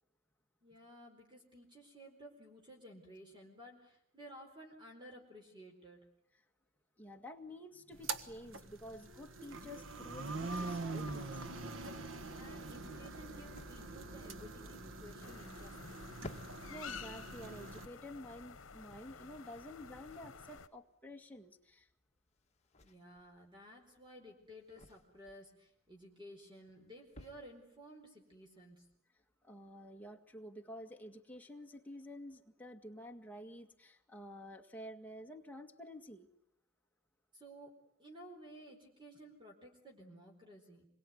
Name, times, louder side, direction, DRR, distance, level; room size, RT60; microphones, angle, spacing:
voice 1, 0.6-6.0 12.4-16.0 22.8-28.9 37.3-40.9, equal, 25° right, 1 dB, 4.4 m, -55 dB
voice 2, 7.0-11.4 16.7-21.9 29.4-36.3, equal, 10° left, 2 dB, 2.0 m, -50 dB
sound 1, 7.9-17.8, right 3 dB, 65° right, 1.5 m, -44 dB
sound 2, 11.0-29.0, left 2 dB, 35° left, 1.7 m, -59 dB
sound 3, 15.2-20.7, left 6 dB, 75° left, 1.1 m, -51 dB
27.5 x 22.5 x 9.5 m, 0.71 s
head